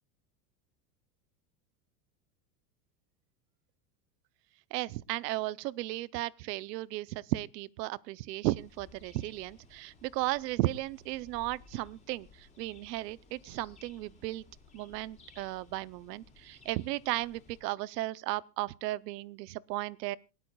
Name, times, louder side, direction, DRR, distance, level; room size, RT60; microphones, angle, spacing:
voice 1, 4.7-14.4 14.7-20.2, right 17 dB, 75° right, 0.7 m, -35 dB
sound 1, 8.5-17.6, left 4 dB, 15° left, 4.7 m, -58 dB
27.0 x 13.0 x 2.3 m
supercardioid pair, 155°, 49 cm